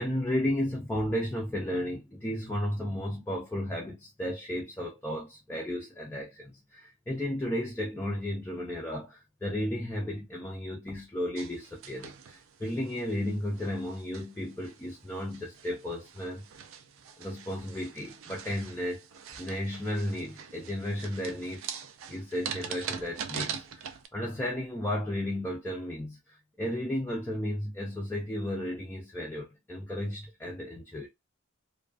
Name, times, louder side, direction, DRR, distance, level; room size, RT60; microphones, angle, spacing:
voice 1, 0.0-16.4 17.2-19.1 19.4-21.7 22.1-31.1, left 1 dB, 10° left, 0.3 m, -34 dB
sound 1, 11.4-24.1, right 7 dB, 70° right, 0.4 m, -43 dB
2.4 x 2.2 x 2.3 m
head